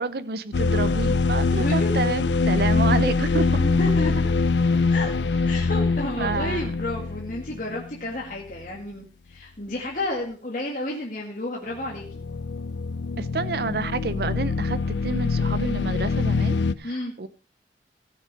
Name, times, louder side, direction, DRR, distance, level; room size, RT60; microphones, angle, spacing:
voice 1, 0.0-3.4 6.2-6.6 13.2-17.3, right 4 dB, 60° right, 13 dB, 0.6 m, -29 dB
sound 1, 0.5-7.9 8.5-8.7 11.7-16.7, left 4 dB, 90° left, 0.6 m, -24 dB
voice 2, 1.6-2.0 2.7-4.3 4.9-5.1 5.5-12.2 16.8-17.1, left 1 dB, 45° left, -2 dB, 1.9 m, -31 dB
15.5 x 6.5 x 5.2 m, 0.36 s
head